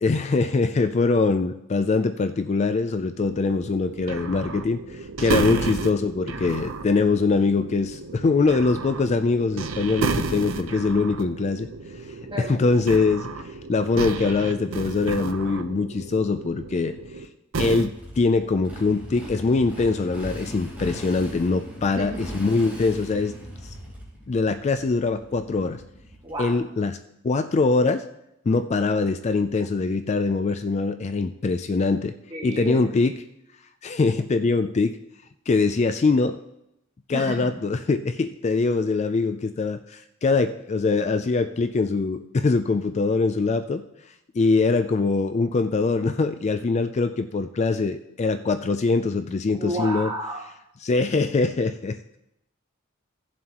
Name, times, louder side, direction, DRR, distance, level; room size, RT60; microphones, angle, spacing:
voice 1, 0.0-11.7 12.4-13.3 13.7-17.0 17.6-23.3 23.6-23.7 24.3-25.8 26.4-27.0 27.2-28.0 28.5-32.1 32.4-33.1 33.8-35.0 35.5-36.4 37.1-43.8 44.3-50.1 50.8-52.0, left 3 dB, 35° left, 9 dB, 0.4 m, -23 dB
sound 1, 3.2-17.3 17.5-17.9, right 3 dB, 80° right, 0.7 m, -32 dB
Motorcycle, 17.9-26.6, equal, 10° right, 3.8 m, -39 dB
voice 2, 21.8-22.2 26.2-26.6 32.3-32.9 37.1-37.5 49.6-50.5, right 1 dB, 25° right, -2 dB, 1.8 m, -31 dB
17.0 x 7.3 x 3.0 m, 0.84 s
head